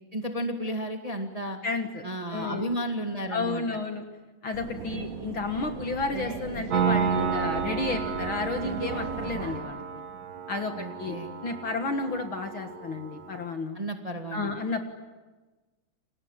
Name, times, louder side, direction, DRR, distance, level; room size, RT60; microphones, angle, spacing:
voice 1, 0.1-1.6 2.0-3.8 4.9-5.1 10.8-11.3 13.7-14.5, right 1 dB, 15° right, 3 dB, 2.0 m, -33 dB
voice 2, 1.6-2.0 2.3-2.7 3.3-4.0 4.4-9.8 10.5-10.7 11.0-11.2 11.4-13.8 14.3-14.9, left 3 dB, 50° left, 5 dB, 2.1 m, -31 dB
sound 1, 4.5-9.6, right 4 dB, 85° right, 4.4 m, -38 dB
Piano, 6.7-13.4, right 6 dB, 65° right, 0.9 m, -31 dB
29.5 x 26.0 x 7.4 m, 1.2 s
omnidirectional pair, 3.4 m